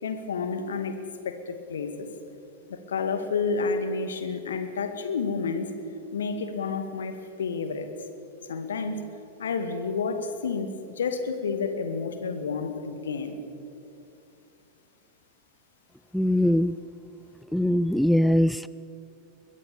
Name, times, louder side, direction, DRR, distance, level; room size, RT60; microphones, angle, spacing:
voice 1, 0.0-1.0 1.2-2.1 2.7-5.7 6.1-7.9 8.5-9.1 9.4-13.4, left 5 dB, 65° left, 8 dB, 2.1 m, -30 dB
voice 2, 16.1-16.7 17.5-18.7, left 1 dB, ahead, 16 dB, 0.4 m, -22 dB
22.5 x 20.5 x 7.2 m, 2.7 s
figure-of-eight pair, 90°, 0 cm